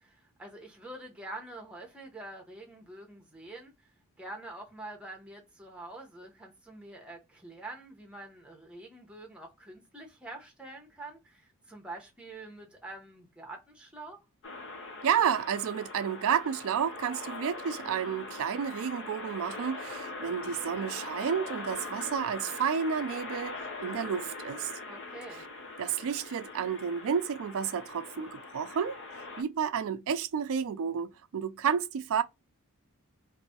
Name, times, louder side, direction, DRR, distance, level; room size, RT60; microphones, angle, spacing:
voice 1, 0.0-3.9 4.2-14.2 24.9-25.4, right 2 dB, 5° right, 0.9 m, -46 dB
sound 1, 14.4-29.4, left 3 dB, 55° left, 0.7 m, -42 dB
voice 2, 15.0-24.7 25.8-29.0 29.4-32.2, right 7 dB, 65° right, 0.4 m, -31 dB
3.0 x 2.6 x 2.7 m
head